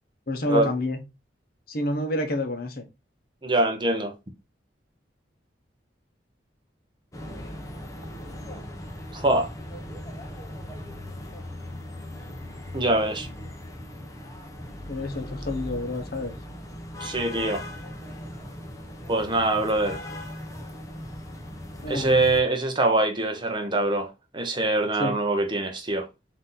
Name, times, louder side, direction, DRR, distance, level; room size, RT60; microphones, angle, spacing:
voice 1, 0.3-1.0 1.7-2.9 14.9-16.3 21.8-22.3 25.0-25.2, left 1 dB, 55° left, 0.9 m, -28 dB
voice 2, 3.4-4.1 9.1-9.5 12.7-13.3 17.0-17.6 19.1-20.0 21.9-24.1 24.3-26.1, right 2 dB, 25° right, 0.7 m, -24 dB
sound 1, 7.1-22.4, left 1 dB, 15° left, 0.7 m, -39 dB
3.9 x 2.7 x 3.8 m
head